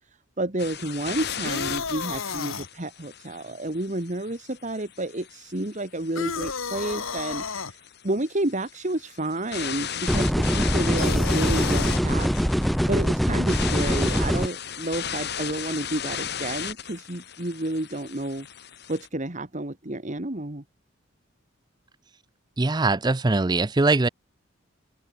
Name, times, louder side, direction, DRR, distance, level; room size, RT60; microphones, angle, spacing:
voice 1, 0.4-7.8 8.0-18.5 18.9-20.6, right 1 dB, 35° right, 1.9 m, -30 dB
sound 1, 0.6-19.1, left 8 dB, 55° left, 3.8 m, -36 dB
sound 2, 1.1-2.7 6.2-7.7 11.0-12.0, left 5 dB, 85° left, 2.1 m, -32 dB
sound 3, 10.1-14.5, equal, ahead, 1.6 m, -23 dB
voice 2, 22.6-24.1, right 3 dB, 20° right, 0.5 m, -21 dB
open air
head